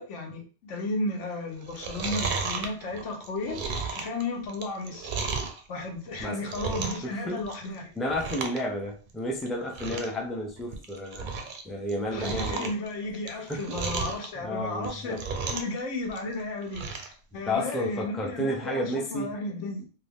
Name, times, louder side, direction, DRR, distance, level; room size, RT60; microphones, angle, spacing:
voice 1, 0.0-5.1 5.7-7.9 9.9-10.1 12.1-19.8, left 2 dB, 85° left, 2 dB, 1.1 m, -34 dB
Chewing mastication, 1.6-5.6 6.1-7.1 7.4-7.7 8.1-8.6 8.9-9.0 9.4-9.5 9.7-10.2 10.6-11.6 11.9-14.3 14.7-15.8 16.1-17.1 17.5-17.6, right 4 dB, 55° right, 0.6 m, -33 dB
voice 2, 7.0-7.4 8.0-11.3 11.6-12.7 13.3-13.8 14.4-15.2 17.5-19.4, left 1 dB, ahead, 0 dB, 0.3 m, -32 dB
2.7 x 2.4 x 3.4 m, 0.37 s
omnidirectional pair, 1.2 m